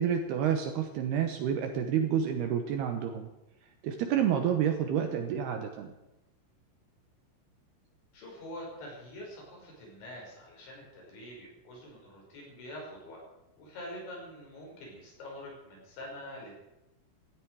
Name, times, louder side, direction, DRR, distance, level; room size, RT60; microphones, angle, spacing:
voice 1, 0.0-3.3 3.8-5.9, right 8 dB, 70° right, 6 dB, 2.6 m, -29 dB
voice 2, 8.1-13.2 13.6-16.5, left 1 dB, 65° left, -2 dB, 7.8 m, -45 dB
17.5 x 15.0 x 4.8 m, 0.94 s
omnidirectional pair, 5.6 m